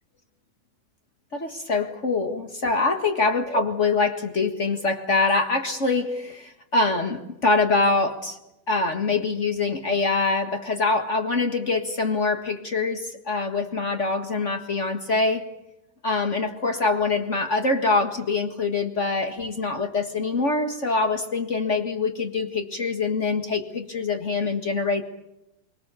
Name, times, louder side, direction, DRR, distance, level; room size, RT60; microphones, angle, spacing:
voice 1, 1.3-8.4 8.7-15.4 16.0-25.0, left 3 dB, 55° left, 5 dB, 0.7 m, -24 dB
30.0 x 23.5 x 7.0 m, 0.88 s
omnidirectional pair, 4.3 m